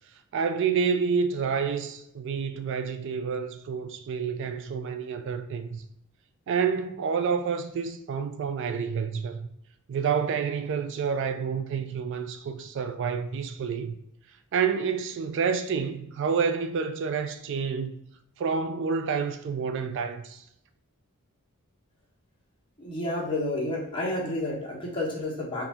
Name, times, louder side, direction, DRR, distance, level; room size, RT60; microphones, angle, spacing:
voice 1, 0.3-5.8 6.5-9.5 9.9-13.9 14.5-18.0 18.4-20.4, right 6 dB, 55° right, 0.3 m, -28 dB
voice 2, 22.8-25.7, left 1 dB, 20° left, 1.3 m, -30 dB
4.3 x 2.6 x 3.4 m
head